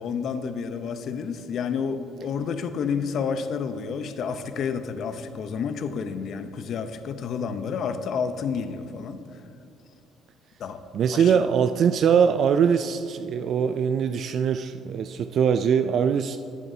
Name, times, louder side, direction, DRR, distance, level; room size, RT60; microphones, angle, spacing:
voice 1, 0.0-9.2 10.6-10.8 11.1-11.4, left 6 dB, 60° left, 9 dB, 0.7 m, -30 dB
voice 2, 10.9-16.4, right 7 dB, 55° right, 9 dB, 0.3 m, -22 dB
18.0 x 7.3 x 2.7 m, 2.9 s
cardioid pair, 100°, 0 cm